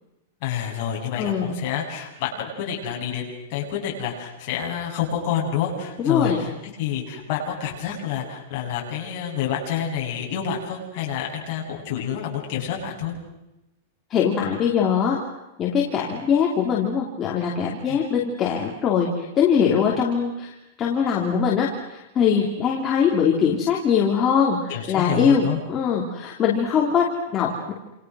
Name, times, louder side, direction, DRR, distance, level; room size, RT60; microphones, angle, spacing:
voice 1, 0.4-6.5 6.8-13.2 17.9-18.0 24.7-25.6, left 8 dB, 35° left, -2 dB, 7.8 m, -28 dB
voice 2, 1.2-1.6 6.0-6.4 14.1-15.2 15.6-20.5 20.8-27.7, left 7 dB, 15° left, -2 dB, 3.0 m, -22 dB
29.5 x 28.5 x 6.2 m, 0.93 s
supercardioid pair, 180°, 0 cm